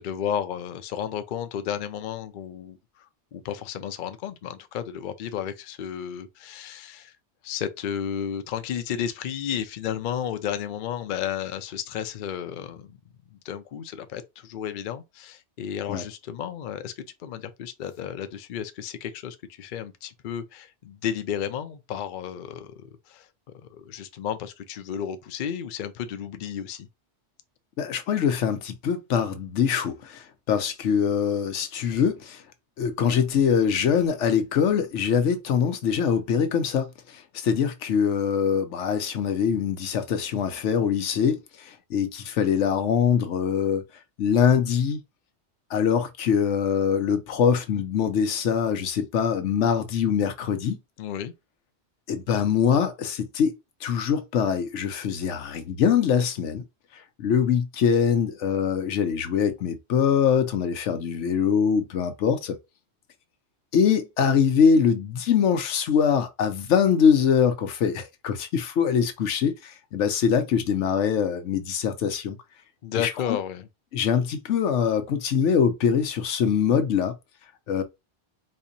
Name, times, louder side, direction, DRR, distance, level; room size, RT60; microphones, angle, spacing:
voice 1, 0.0-7.1 7.4-13.0 13.3-23.3 23.5-26.9 51.0-51.3 72.8-73.7, left 9 dB, 55° left, 0.6 m, -33 dB
voice 2, 27.8-32.4 32.8-36.9 37.1-43.8 44.2-45.0 45.7-50.8 52.1-53.5 53.8-56.6 57.2-62.6 63.7-72.4 73.0-73.1 73.9-77.1 77.7-77.8, left 7 dB, 90° left, 1.0 m, -23 dB
4.3 x 2.8 x 2.6 m
omnidirectional pair, 1.2 m